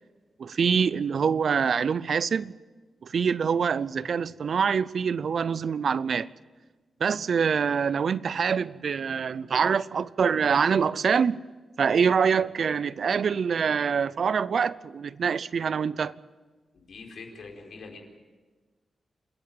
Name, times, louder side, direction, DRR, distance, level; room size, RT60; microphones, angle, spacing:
voice 1, 0.4-2.5 3.0-6.3 7.0-11.4 11.8-16.1, right 6 dB, 60° right, 0.5 m, -25 dB
voice 2, 16.7-18.0, left 4 dB, 75° left, 4.5 m, -44 dB
28.0 x 10.5 x 9.0 m
wide cardioid pair, 140°, 0 cm